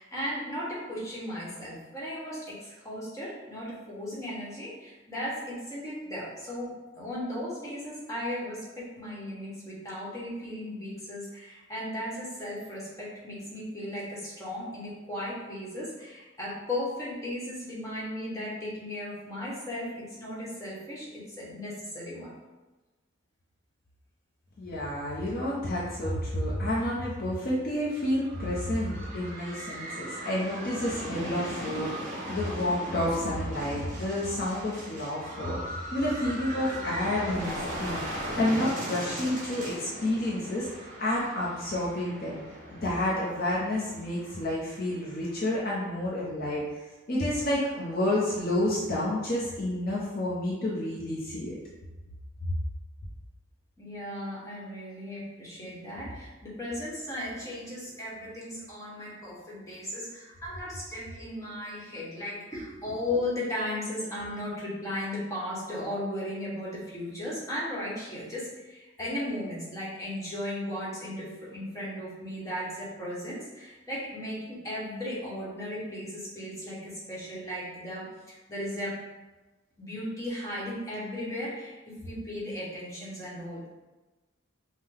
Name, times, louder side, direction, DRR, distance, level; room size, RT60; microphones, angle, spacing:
voice 1, 0.0-22.3 53.8-79.0 79.8-83.6, left 1 dB, 15° left, -7 dB, 1.1 m, -36 dB
voice 2, 24.6-42.4 42.7-46.7 47.1-51.6, left 1 dB, 45° left, -6 dB, 0.6 m, -30 dB
sound 1, 27.9-45.5, right 1 dB, 40° right, 0.9 m, -39 dB
5.5 x 2.1 x 3.4 m, 1.1 s
head